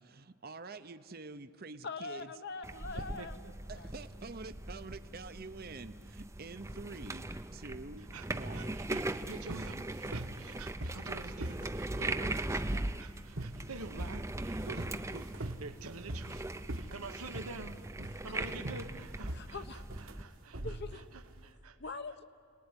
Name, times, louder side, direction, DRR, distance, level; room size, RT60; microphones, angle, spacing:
voice 1, 0.1-2.3 3.7-7.3 7.5-8.9, right 3 dB, 45° right, 10 dB, 0.8 m, -47 dB
voice 2, 1.8-3.4 3.8-3.9 18.1-18.2 19.3-19.8 20.6-21.1 21.8-22.2, left 3 dB, 50° left, 10 dB, 1.0 m, -42 dB
sound 1, 2.6-20.2, right 2 dB, 15° right, 0.6 m, -40 dB
voice 3, 2.9-3.5 8.0-16.4 16.7-17.8 18.1-22.0, right 3 dB, 90° right, 7 dB, 1.2 m, -48 dB
sound 2, 9.2-21.4, right 1 dB, 65° right, 1.4 m, -43 dB
29.5 x 19.5 x 9.8 m, 2.2 s
head